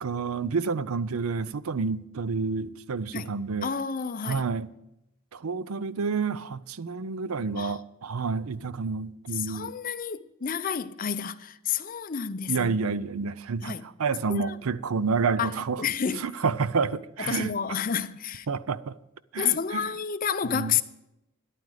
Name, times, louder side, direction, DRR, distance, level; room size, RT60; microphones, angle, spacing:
voice 1, 0.0-3.7 4.2-4.7 5.3-9.7 12.5-15.8 16.2-17.5 18.5-19.0 19.3-19.9 20.4-20.8, right 5 dB, 80° right, 0.5 m, -29 dB
voice 2, 3.6-4.4 7.6-7.8 9.3-12.8 13.6-13.8 14.3-14.6 15.4-16.3 17.3-18.5 19.4-20.8, left 7 dB, 40° left, 0.6 m, -30 dB
13.0 x 11.0 x 4.9 m
head